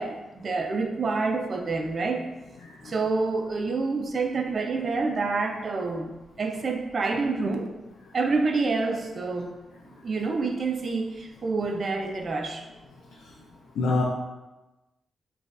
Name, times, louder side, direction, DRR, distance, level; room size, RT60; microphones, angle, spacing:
voice 1, 0.0-2.2 2.8-6.1 6.4-7.7 8.1-9.5 10.0-12.7, right 3 dB, 50° right, 3 dB, 0.6 m, -27 dB
voice 2, 2.6-2.9 13.8-14.0, left 3 dB, 90° left, -2 dB, 0.5 m, -26 dB
7.0 x 2.5 x 2.5 m, 1.1 s
cardioid pair, 70°, 0 cm